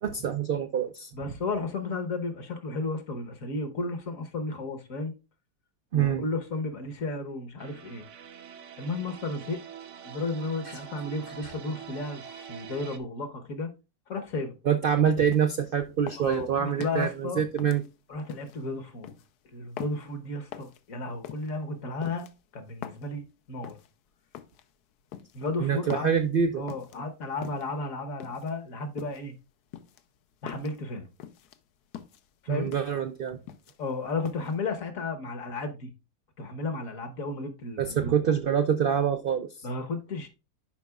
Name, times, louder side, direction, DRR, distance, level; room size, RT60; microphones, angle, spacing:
voice 1, 0.0-1.1 5.9-6.2 11.4-11.5 14.7-17.8 25.6-26.6 32.5-33.4 37.8-39.5, right 8 dB, 85° right, 0.4 m, -26 dB
voice 2, 1.1-5.1 5.9-8.0 8.8-9.6 10.0-13.7 14.1-14.6 16.2-17.4 18.1-19.1 19.5-23.8 25.3-26.1 26.6-29.4 30.4-31.1 32.4-32.7 33.8-35.9 36.4-38.1 39.6-40.3, left 3 dB, 60° left, 1.4 m, -33 dB
sound 1, 7.6-13.0, right 8 dB, 60° right, 0.9 m, -45 dB
sound 2, 15.3-15.7 16.1-17.1 17.6-18.6 19.0-19.3 19.8-20.1 20.5-20.8 21.2-21.5 22.0-23.1 23.6-23.9 24.3-24.7 25.1-25.5 25.9-26.2 26.7-27.0 27.4-27.8 28.2-28.5 29.0-29.3 29.7-30.8 31.2-31.6 31.9-32.3 32.7-33.0 33.3-33.9 34.3-34.5, left 10 dB, 80° left, 1.2 m, -43 dB
10.5 x 5.2 x 2.3 m
omnidirectional pair, 1.7 m